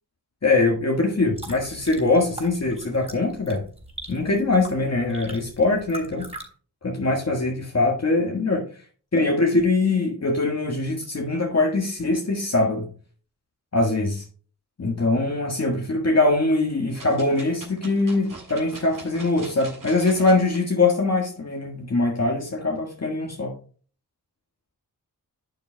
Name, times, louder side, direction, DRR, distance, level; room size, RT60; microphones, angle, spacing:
voice 1, 0.4-3.7 4.1-6.3 6.8-8.7 9.1-12.9 13.7-14.2 14.8-23.5, left 2 dB, 40° left, 0 dB, 1.6 m, -22 dB
sound 1, 1.1-6.5, right 2 dB, 15° right, 3.4 m, -42 dB
sound 2, 16.9-20.6 21.2-21.3, right 2 dB, 55° right, 2.9 m, -42 dB
11.5 x 6.7 x 2.2 m, 0.41 s
cardioid pair, 45°, 39 cm